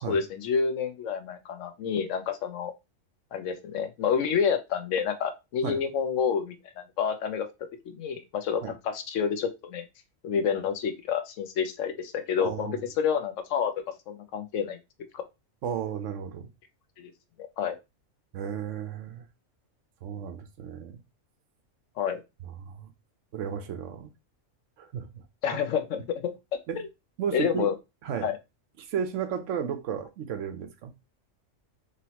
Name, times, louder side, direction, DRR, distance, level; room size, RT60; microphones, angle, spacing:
voice 1, 0.1-2.7 3.3-7.5 7.9-9.8 10.2-14.8 15.1-15.2 17.0-17.1 17.6-17.8 22.0-22.2 25.4-26.3 26.8-26.9 27.3-27.7 28.2-28.4, left 7 dB, 75° left, 1.0 m, -29 dB
voice 2, 12.4-12.8 15.6-16.5 18.3-19.2 20.0-21.0 22.4-22.9 23.3-24.1 24.8-25.2 26.7-26.8 27.2-27.7 28.0-28.3 28.8-30.9, right 8 dB, 70° right, 1.0 m, -34 dB
3.9 x 3.2 x 2.8 m
omnidirectional pair, 1.4 m